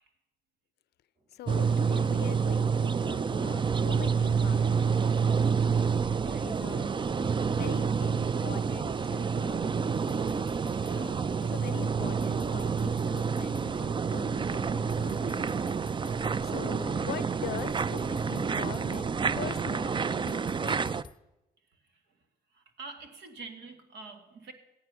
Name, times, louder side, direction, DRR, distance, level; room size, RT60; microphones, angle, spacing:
sound 1, 1.2-19.6, right 1 dB, 50° right, 5.2 m, -62 dB
voice 1, 1.3-5.0 5.5-5.9 6.3-6.9 7.5-9.9 10.9-15.6 16.4-21.0, left 12 dB, 70° left, 19 dB, 0.5 m, -43 dB
sound 2, 1.5-21.0, right 6 dB, 30° right, 0.4 m, -28 dB
voice 2, 6.2-6.7 13.8-13.9 14.9-15.4 16.3-16.5 16.7-17.1 22.5-24.5, right 4 dB, 80° right, 6 dB, 1.8 m, -47 dB
sound 3, 9.9-11.6 11.8-11.9 12.2-14.3 14.5-16.6 16.8-16.9 17.2-19.7 19.9-21.2, left 4 dB, 25° left, 0.7 m, -50 dB
14.0 x 9.7 x 6.1 m, 0.95 s
supercardioid pair, 65°, 17 cm